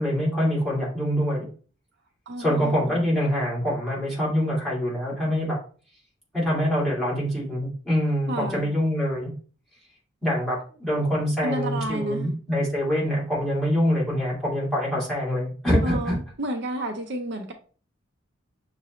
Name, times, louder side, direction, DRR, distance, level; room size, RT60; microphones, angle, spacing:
voice 1, 0.0-1.5 2.4-5.6 6.3-9.3 10.2-16.2, equal, 5° left, 2.4 m, -25 dB
voice 2, 2.3-3.0 8.3-8.7 11.4-12.4 15.8-17.5, right 1 dB, 60° right, 0.6 m, -31 dB
6.4 x 2.6 x 3.1 m
head